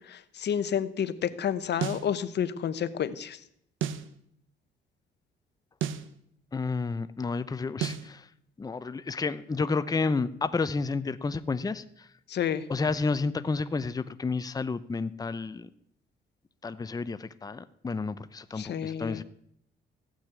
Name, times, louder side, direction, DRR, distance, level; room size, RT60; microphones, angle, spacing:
voice 1, 0.1-3.4 12.3-12.6 18.6-19.2, left 9 dB, 60° left, 14 dB, 1.0 m, -30 dB
sound 1, 1.8-2.1 3.8-4.1 5.8-6.1 7.8-8.1, right 9 dB, 75° right, 0.9 m, -31 dB
voice 2, 6.5-8.3 8.6-12.1 12.7-15.7 16.6-19.2, left 4 dB, 20° left, 14 dB, 0.6 m, -31 dB
15.0 x 6.3 x 8.3 m, 0.71 s
cardioid pair, 90°, 20 cm